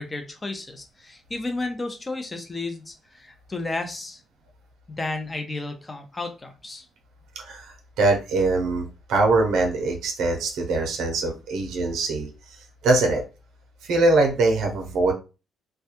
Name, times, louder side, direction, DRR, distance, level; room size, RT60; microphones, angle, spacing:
voice 1, 0.0-4.2 4.9-6.8, left 2 dB, 25° left, 0.6 m, -32 dB
voice 2, 7.4-12.3 12.8-13.2 13.8-15.1, right 2 dB, 85° right, 0.6 m, -22 dB
2.3 x 2.2 x 2.9 m
cardioid pair, 90°, 0 cm